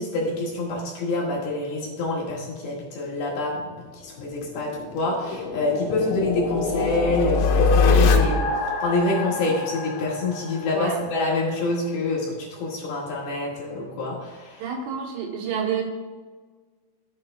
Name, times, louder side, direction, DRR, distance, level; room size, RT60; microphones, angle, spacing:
voice 1, 0.0-8.5 8.8-14.7, left 2 dB, 60° left, -4 dB, 3.1 m, -26 dB
sound 1, 4.2-11.0, left 4 dB, 85° left, 3.4 m, -23 dB
voice 2, 14.6-15.8, right 7 dB, 85° right, 0 dB, 4.0 m, -28 dB
13.5 x 7.8 x 2.2 m, 1.4 s
omnidirectional pair, 5.6 m